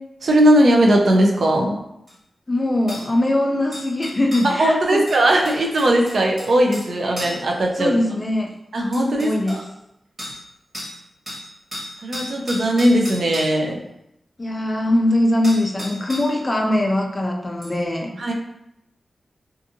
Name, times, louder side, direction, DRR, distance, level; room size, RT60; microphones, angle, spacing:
voice 1, 0.2-1.8 4.4-7.9 8.7-9.6 12.0-13.8 18.2-18.3, right 1 dB, 60° right, 1 dB, 0.4 m, -18 dB
sound 1, 2.1-2.2 2.9-3.1 3.7-4.5 5.1-6.9 7.2-7.5 8.5-8.6 8.9-9.6 10.2-10.4 10.7-11.0 11.3-13.5 15.1-15.2 15.4-16.4 17.6-17.7, equal, 25° right, 1.2 m, -34 dB
voice 2, 2.5-5.0 7.2-7.3 7.8-8.5 9.2-9.6 14.4-18.1, left 1 dB, 20° left, 1 dB, 0.3 m, -21 dB
2.5 x 2.5 x 2.6 m, 0.83 s
wide cardioid pair, 160°, 0 cm